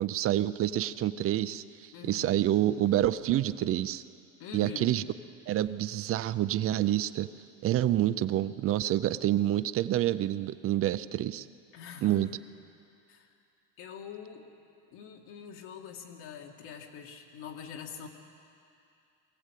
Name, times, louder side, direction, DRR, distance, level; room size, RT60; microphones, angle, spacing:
voice 1, 0.0-4.0 4.5-5.0 5.5-7.3 7.6-11.5 12.0-12.3, right 13 dB, 35° right, 15 dB, 0.4 m, -28 dB
voice 2, 1.9-2.4 4.4-5.0 11.7-12.3 13.1-13.3 13.8-14.5 14.9-18.1, left 7 dB, 65° left, 1 dB, 2.3 m, -44 dB
23.0 x 15.5 x 8.3 m, 2.6 s
cardioid pair, 150°, 42 cm